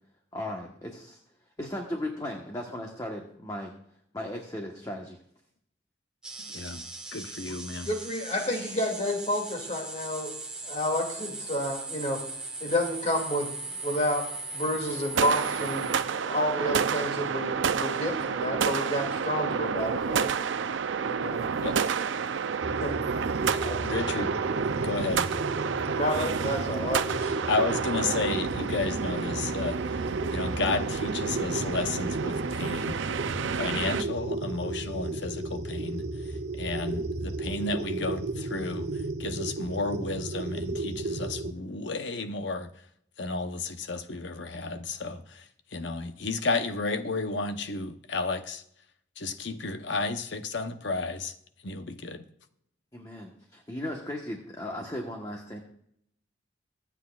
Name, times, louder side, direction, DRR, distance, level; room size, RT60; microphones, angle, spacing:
voice 1, 0.3-1.2 1.6-3.7 4.1-5.2 52.9-55.6, left 1 dB, 20° left, 1.2 m, -36 dB
sound 1, 6.2-16.0, right 3 dB, 5° right, 1.5 m, -39 dB
voice 2, 6.5-6.8 7.1-7.9 21.6-21.8 23.5-24.3 24.8-25.3 27.5-29.8 30.3-33.0 33.6-38.9 39.2-42.7 43.2-45.5 45.7-48.6 49.2-51.3 51.6-52.2, left 3 dB, 70° left, 0.9 m, -32 dB
voice 3, 7.9-10.3 10.6-12.2 12.6-14.3 14.5-20.4 21.0-21.5 22.2-22.3 22.8-23.0 23.6-23.9 26.0-27.4, left 1 dB, 35° left, 2.5 m, -30 dB
sound 2, 15.1-34.0, right 6 dB, 80° right, 0.5 m, -30 dB
sound 3, 22.6-41.5, right 2 dB, 60° right, 1.1 m, -34 dB
25.0 x 8.3 x 2.4 m
head